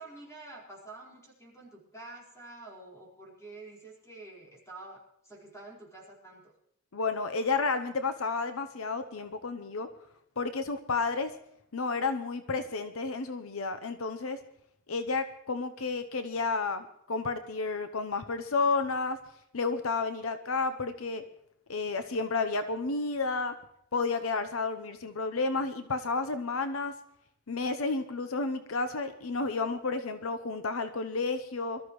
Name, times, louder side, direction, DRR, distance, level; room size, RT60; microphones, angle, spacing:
voice 1, 0.0-6.5, right 2 dB, 15° left, -3 dB, 4.7 m, -48 dB
voice 2, 6.9-9.9 10.4-11.3 11.7-14.4 14.9-19.2 19.5-21.2 21.7-23.5 23.9-26.9 27.5-31.8, left 4 dB, 75° left, 9 dB, 0.8 m, -31 dB
24.0 x 13.5 x 3.2 m, 0.72 s
head